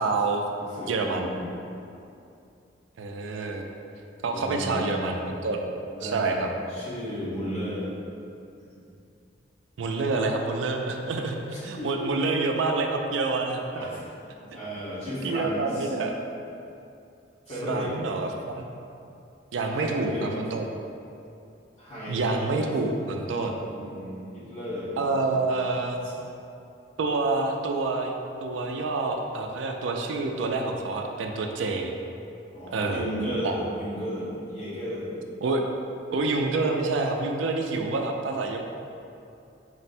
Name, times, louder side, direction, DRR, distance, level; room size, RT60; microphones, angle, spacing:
voice 1, 0.0-0.4 0.8-1.3 3.0-3.7 4.2-5.7 6.0-6.5 9.8-13.9 15.0-16.2 17.6-18.7 19.5-20.6 22.1-23.5 25.0-26.0 27.0-31.9 32.7-33.1 33.4-33.5 35.4-35.6 36.1-38.6, right 3 dB, 85° right, 3 dB, 0.4 m, -27 dB
voice 2, 0.6-1.4 4.3-5.2 5.9-6.4 6.7-7.9 8.6-8.7 11.5-12.1 13.7-14.1 14.5-15.9 17.5-17.9 19.6-20.3 21.8-22.7 23.4-25.5 26.0-26.1 32.5-35.1, equal, 35° left, -11 dB, 1.3 m, -34 dB
4.4 x 2.1 x 4.2 m, 2.6 s
head